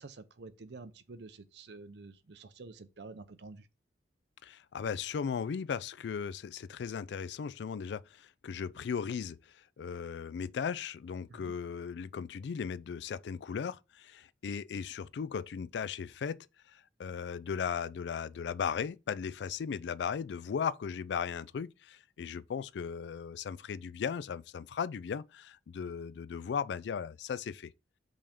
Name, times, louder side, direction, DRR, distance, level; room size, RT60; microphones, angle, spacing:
voice 1, 0.0-3.7 11.3-11.5, right 3 dB, 70° right, 0.6 m, -49 dB
voice 2, 4.4-27.7, left 6 dB, 70° left, 0.3 m, -37 dB
5.4 x 3.5 x 5.1 m
head